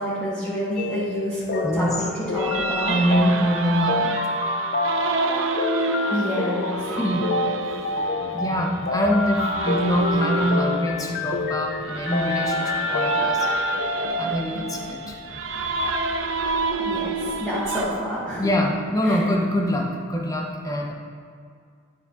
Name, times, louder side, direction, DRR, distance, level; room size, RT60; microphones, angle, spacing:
voice 1, 0.0-2.1 2.3-3.0 6.1-7.1 16.8-18.5 19.0-19.2, equal, ahead, -12 dB, 1.7 m, -28 dB
sound 1, 0.8-14.1, left 3 dB, 50° left, 0.5 m, -28 dB
voice 2, 1.6-1.9 2.8-4.2 7.0-7.3 7.5-7.7 8.3-13.5 14.1-15.2 18.4-20.9, equal, 20° left, 0 dB, 0.9 m, -24 dB
sound 2, 2.4-17.8, right 3 dB, 80° right, 0.7 m, -28 dB
11.0 x 4.9 x 4.0 m, 2.2 s
head